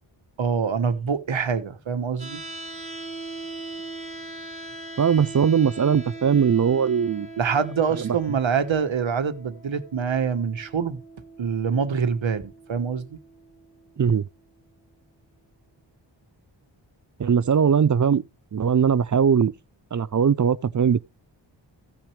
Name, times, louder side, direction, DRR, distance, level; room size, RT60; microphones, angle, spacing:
voice 1, 0.4-2.4 7.4-11.0 11.4-13.2, right 6 dB, 80° right, 1.3 m, -25 dB
sound 1, 2.2-14.2, right 2 dB, 15° right, 2.6 m, -40 dB
voice 2, 5.0-7.3 8.0-8.1 14.0-14.2 17.2-18.2 18.5-19.5 19.9-21.1, right 7 dB, 40° right, 0.5 m, -20 dB
16.0 x 6.1 x 3.3 m
wide cardioid pair, 95°, 46 cm